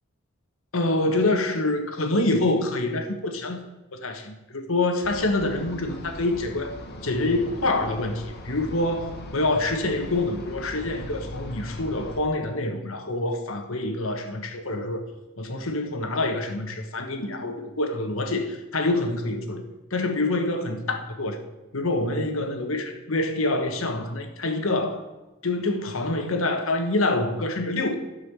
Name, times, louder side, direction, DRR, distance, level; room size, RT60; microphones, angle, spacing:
voice 1, 0.7-3.6 3.9-6.7 7.0-15.0 15.4-19.6 19.9-21.4 21.7-25.0 25.4-28.0, left 2 dB, 80° left, 1.4 m, -26 dB
sound 1, 5.0-12.2, left 1 dB, 50° left, 1.5 m, -39 dB
11.5 x 5.6 x 6.8 m
head